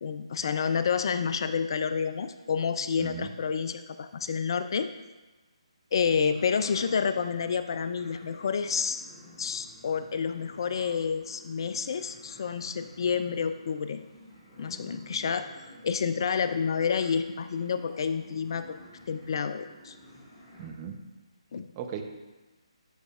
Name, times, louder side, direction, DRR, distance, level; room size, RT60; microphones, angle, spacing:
voice 1, 0.0-4.9 5.9-9.0 9.4-14.0 14.6-15.5 15.8-18.8 19.1-19.9 21.5-21.7, left 6 dB, 45° left, 11 dB, 0.3 m, -29 dB
voice 2, 3.0-3.3 20.6-21.0 21.8-22.0, right 8 dB, 25° right, 4 dB, 0.7 m, -37 dB
sound 1, 6.0-20.7, equal, 20° left, 2.0 m, -51 dB
11.0 x 5.0 x 2.4 m, 1.2 s
figure-of-eight pair, 145°, 3 cm